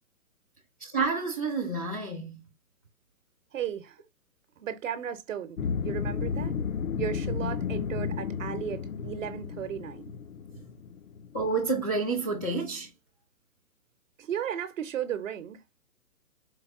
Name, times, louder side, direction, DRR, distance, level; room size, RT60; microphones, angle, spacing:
voice 1, 0.8-2.5 11.3-12.9, right 4 dB, 15° left, 0.5 m, -29 dB
voice 2, 3.5-4.0 4.6-6.6 7.0-10.1 14.2-15.6, right 9 dB, 65° right, 0.8 m, -35 dB
sound 1, 5.6-11.8, left 6 dB, 70° left, 0.7 m, -33 dB
4.6 x 2.2 x 3.5 m
hypercardioid pair, 165°, 41 cm